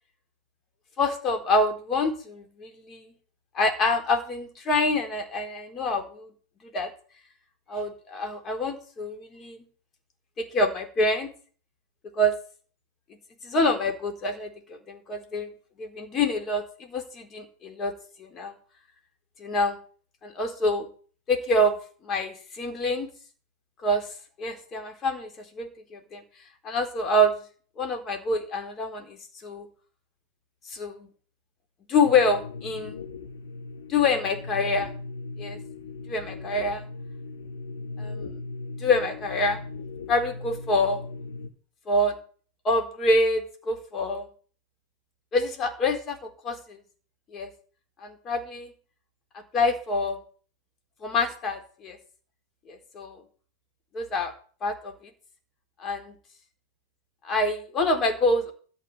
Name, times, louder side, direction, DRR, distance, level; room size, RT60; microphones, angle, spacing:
voice 1, 1.0-3.0 3.5-6.3 6.7-6.9 7.7-9.6 10.4-11.3 12.2-12.3 13.4-15.5 15.8-17.9 18.2-18.5 19.4-19.8 20.2-20.9 21.3-21.8 22.0-23.1 23.8-24.0 24.4-26.2 26.6-27.4 27.8-29.7 30.7-31.1 31.9-33.0 33.9-34.9 35.4-35.6 36.1-36.8 38.0-38.2 38.8-39.6 40.1-41.0 41.9-42.2 42.6-44.3 45.3-46.8 47.3-47.5 48.0-48.7 49.3-50.2 51.0-52.0 52.7-53.2 53.9-54.3 54.6-54.9 55.8-56.2 57.2-58.5, left 2 dB, 25° left, 5 dB, 4.1 m, -26 dB
sound 1, 32.0-41.5, left 3 dB, 65° left, 2.2 m, -38 dB
13.5 x 5.8 x 9.7 m, 0.42 s
figure-of-eight pair, 90°, 0 cm